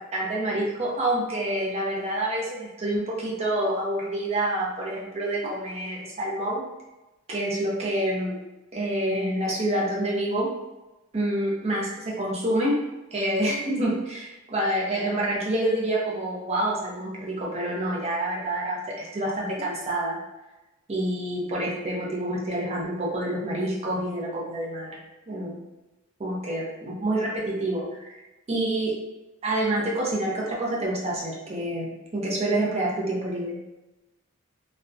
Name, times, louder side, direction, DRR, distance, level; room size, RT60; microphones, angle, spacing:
voice 1, 0.1-6.6 7.3-8.3 8.7-10.5 11.1-12.7 13.1-20.2 20.9-24.9 25.3-25.6 26.2-28.2 28.5-28.9 29.4-33.6, right 1 dB, 30° right, -4 dB, 0.6 m, -27 dB
2.3 x 2.1 x 2.5 m, 1.0 s
head